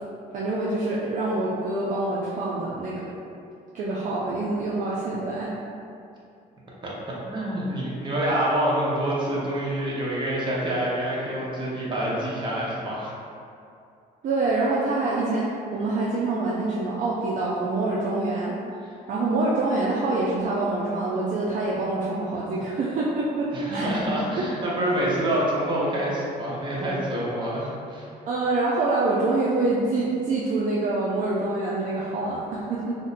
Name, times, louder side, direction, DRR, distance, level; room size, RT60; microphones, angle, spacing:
voice 1, 0.3-3.2 3.7-5.5 14.2-18.5 19.1-23.9 28.3-33.0, right 2 dB, 50° right, -6 dB, 0.4 m, -26 dB
voice 2, 7.3-13.1 23.5-28.1, right 1 dB, 30° right, -6 dB, 0.8 m, -26 dB
2.6 x 2.1 x 3.9 m, 2.5 s
cardioid pair, 110°, 17 cm